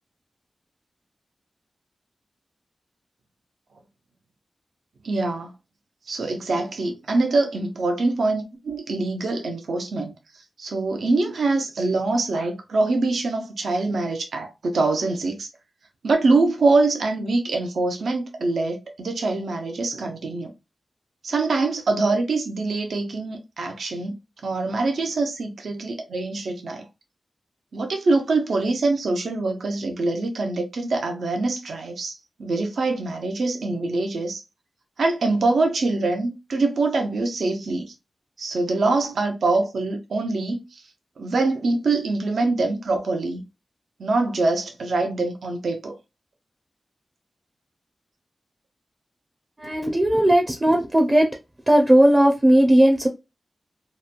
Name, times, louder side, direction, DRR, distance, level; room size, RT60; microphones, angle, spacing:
voice 1, 5.0-5.5 6.1-15.5 16.0-20.5 21.2-24.1 24.4-26.8 27.7-34.4 35.0-37.9 38.4-40.8 41.2-43.4 44.0-46.0, right 3 dB, 90° right, 0.6 m, -24 dB
voice 2, 49.6-51.3 51.7-53.1, right 1 dB, 20° right, 0.5 m, -17 dB
2.9 x 2.2 x 2.4 m
wide cardioid pair, 120°, 0 cm